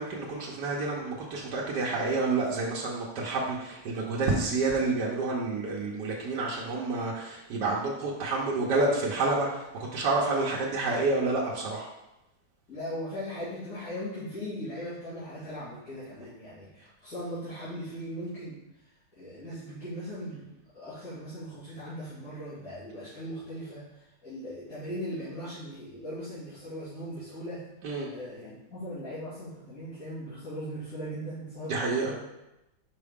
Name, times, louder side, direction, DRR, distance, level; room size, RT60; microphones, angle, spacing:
voice 1, 0.0-11.9 27.8-28.1 31.7-32.1, right 3 dB, 90° right, -3 dB, 1.4 m, -29 dB
voice 2, 12.7-18.6 19.1-27.6 28.1-32.2, equal, 60° left, -13 dB, 2.7 m, -39 dB
5.6 x 4.7 x 3.5 m, 0.94 s
omnidirectional pair, 1.8 m